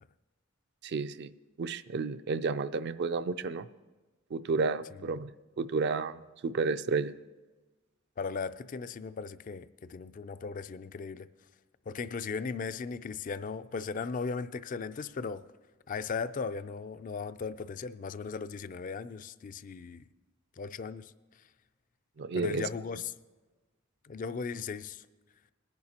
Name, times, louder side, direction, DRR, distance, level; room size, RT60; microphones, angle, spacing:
voice 1, 0.8-1.3 1.6-3.7 4.3-5.3 5.6-7.1 22.2-22.6, right 4 dB, 55° right, 0.4 m, -31 dB
voice 2, 8.2-11.3 11.9-15.4 15.9-20.1 20.6-21.4 22.3-23.1 24.0-25.1, left 5 dB, 40° left, 0.4 m, -37 dB
21.0 x 10.5 x 2.9 m
head